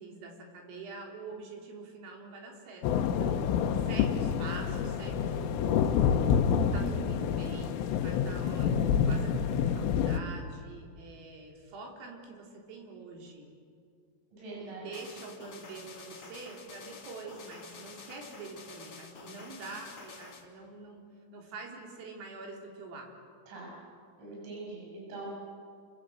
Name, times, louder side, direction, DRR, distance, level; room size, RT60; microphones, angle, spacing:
voice 1, 0.0-3.4 3.9-5.9 6.7-13.5 14.6-21.0 21.3-23.1, right 3 dB, 90° right, 0 dB, 6.6 m, -45 dB
sound 1, 2.8-10.2, left 7 dB, 80° left, 3.7 m, -28 dB
voice 2, 14.3-14.9 23.5-23.7 24.2-25.3, right 2 dB, 65° right, -3 dB, 9.7 m, -42 dB
sound 2, 14.9-20.5, left 4 dB, 35° left, 2.1 m, -49 dB
29.0 x 25.0 x 8.1 m, 2.2 s
omnidirectional pair, 5.8 m